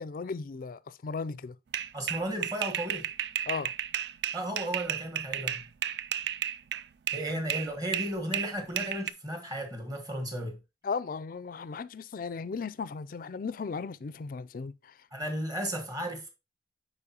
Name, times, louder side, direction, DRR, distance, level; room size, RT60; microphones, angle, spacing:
voice 1, 0.0-1.6 3.5-3.7 7.3-7.4 10.8-15.0, left 5 dB, 50° left, 0.4 m, -36 dB
sound 1, 1.7-7.3 7.5-9.1, right 10 dB, 65° right, 0.4 m, -33 dB
voice 2, 1.9-3.1 4.3-5.6 7.1-10.6 15.1-16.3, right 1 dB, 20° right, 1.5 m, -34 dB
9.9 x 4.3 x 2.9 m
head